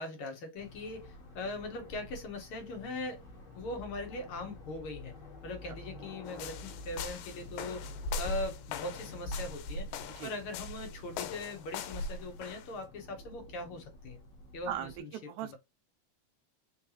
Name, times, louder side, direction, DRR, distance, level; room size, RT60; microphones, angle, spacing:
voice 1, 0.0-3.3 3.5-5.1 5.4-9.9 10.2-14.2 14.5-15.1 15.4-15.6, left 2 dB, 60° left, 1.5 m, -40 dB
sound 1, 0.5-15.0, left 2 dB, 35° left, 1.4 m, -49 dB
sound 2, 6.3-12.7, left 3 dB, 85° left, 2.0 m, -39 dB
voice 2, 14.6-15.6, right 11 dB, 80° right, 2.0 m, -39 dB
4.7 x 3.2 x 2.9 m
omnidirectional pair, 3.4 m